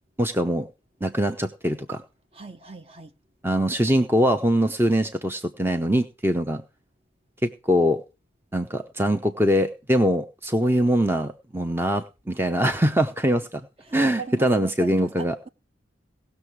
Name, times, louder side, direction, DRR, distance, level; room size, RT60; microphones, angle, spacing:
voice 1, 0.2-0.7 1.0-2.0 3.4-6.6 7.4-8.0 8.5-13.6 13.9-15.4, equal, 10° right, 0.8 m, -22 dB
voice 2, 2.3-3.1 13.8-15.5, right 3 dB, 30° right, 1.1 m, -39 dB
18.0 x 6.7 x 4.7 m
head